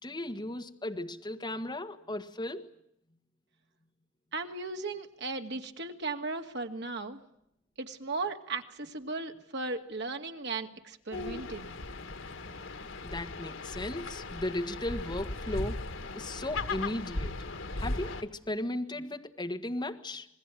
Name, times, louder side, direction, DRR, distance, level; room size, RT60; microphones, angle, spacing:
voice 1, 0.0-2.7 13.0-15.8 16.1-17.3 17.8-20.3, left 1 dB, 25° left, 5 dB, 1.8 m, -36 dB
voice 2, 4.3-7.2 7.8-11.7, right 3 dB, 60° right, 5 dB, 2.3 m, -36 dB
sound 1, 11.1-18.2, left 2 dB, 80° left, 2.0 m, -37 dB
27.5 x 20.5 x 9.2 m, 0.77 s
head